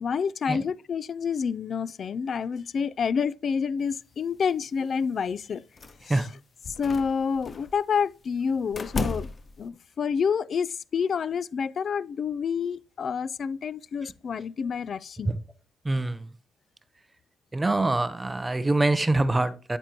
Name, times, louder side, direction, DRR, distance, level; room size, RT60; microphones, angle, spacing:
voice 1, 0.0-5.6 6.0-6.2 6.8-9.3 9.6-15.3, left 6 dB, 50° left, 0.4 m, -28 dB
sound 1, 5.8-6.2 6.6-7.7 8.7-9.7, left 3 dB, 35° left, 0.9 m, -34 dB
voice 2, 15.8-16.3 17.5-19.8, right 2 dB, 15° right, 0.7 m, -24 dB
9.1 x 8.8 x 2.9 m
cardioid pair, 90°, 0 cm